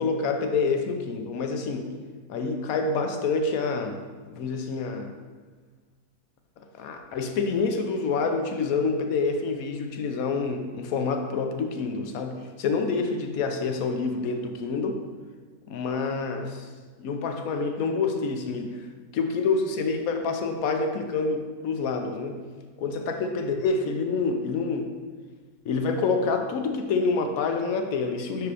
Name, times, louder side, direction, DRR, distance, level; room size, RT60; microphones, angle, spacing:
voice 1, 0.0-1.9 2.3-4.0 4.3-5.1 6.7-15.0 15.7-16.7 17.0-18.8 19.1-22.4 22.8-24.9 25.6-28.5, left 4 dB, 65° left, 5 dB, 1.1 m, -27 dB
5.7 x 4.9 x 4.8 m, 1.5 s
omnidirectional pair, 1.7 m